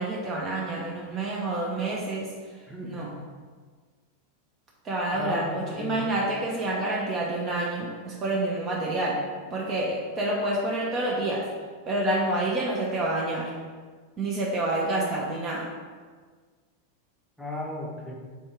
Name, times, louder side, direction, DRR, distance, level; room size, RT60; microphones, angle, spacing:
voice 1, 0.0-2.3 2.8-3.1 4.8-9.2 9.5-11.5 11.9-13.5 14.2-15.7, right 2 dB, 30° right, -3 dB, 0.6 m, -28 dB
voice 2, 2.7-3.1 5.1-6.1 17.4-18.1, left 2 dB, ahead, -4 dB, 0.8 m, -35 dB
3.5 x 2.7 x 4.5 m, 1.5 s
figure-of-eight pair, 90°, 0 cm